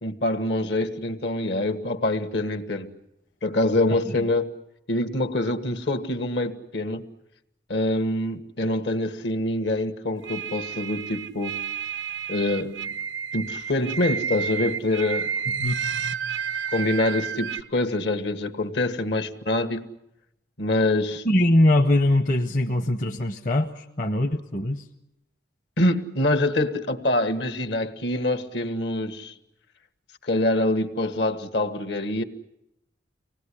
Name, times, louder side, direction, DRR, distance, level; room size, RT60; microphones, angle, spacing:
voice 1, 0.0-2.9 3.4-4.5 4.9-7.1 7.7-11.6 12.3-12.8 13.3-15.3 16.7-19.9 20.6-21.2 25.8-29.3 30.2-32.2, left 1 dB, 70° left, 1.6 m, -25 dB
voice 2, 3.9-4.2 15.6-15.8 21.2-24.8, left 1 dB, 45° left, 0.9 m, -22 dB
sound 1, 10.2-17.6, right 7 dB, 85° right, 0.9 m, -30 dB
25.0 x 19.0 x 10.0 m
head